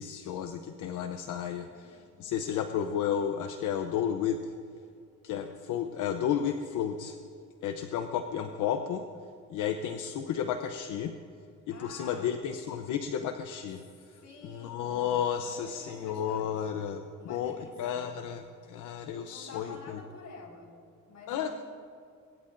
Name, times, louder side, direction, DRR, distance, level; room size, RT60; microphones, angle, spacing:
voice 1, 0.0-4.5 5.2-7.1 7.6-9.1 9.5-11.1 11.7-20.0 21.3-21.5, left 8 dB, 90° left, 7 dB, 0.8 m, -32 dB
voice 2, 1.7-2.1 6.4-6.6 11.7-12.4 14.2-16.9 17.2-18.2 19.3-20.7 21.1-21.6, left 3 dB, 65° left, -1 dB, 5.0 m, -49 dB
23.0 x 21.5 x 2.6 m, 2.5 s
cardioid pair, 90°, 30 cm